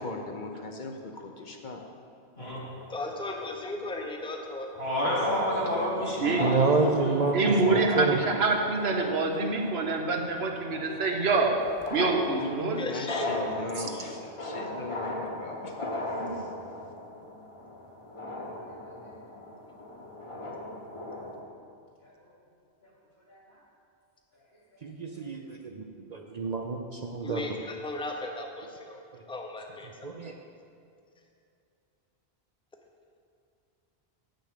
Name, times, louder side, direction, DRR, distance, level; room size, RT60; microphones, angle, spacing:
voice 1, 0.0-1.8 12.4-12.5 12.9-15.9, left 2 dB, 50° left, 3 dB, 0.8 m, -39 dB
sound 1, 2.4-3.5 4.6-4.7 4.9-21.4, left 1 dB, 30° left, 1.1 m, -37 dB
voice 2, 2.9-4.7 12.8-13.5 13.8-14.0 27.2-29.0 29.3-29.9, left 2 dB, 5° left, 2 dB, 0.7 m, -36 dB
voice 3, 4.8-7.2 12.5-12.7 22.0-22.1 23.3-23.4, equal, 70° left, -3 dB, 2.4 m, -31 dB
voice 4, 6.4-7.4 7.7-8.2 24.8-25.8 26.1-27.4 30.0-30.4, right 4 dB, 50° right, 2 dB, 0.6 m, -28 dB
voice 5, 7.3-11.5 11.9-12.9 16.2-16.4, right 3 dB, 75° right, 2 dB, 1.2 m, -26 dB
8.1 x 6.4 x 6.6 m, 2.5 s
omnidirectional pair, 1.1 m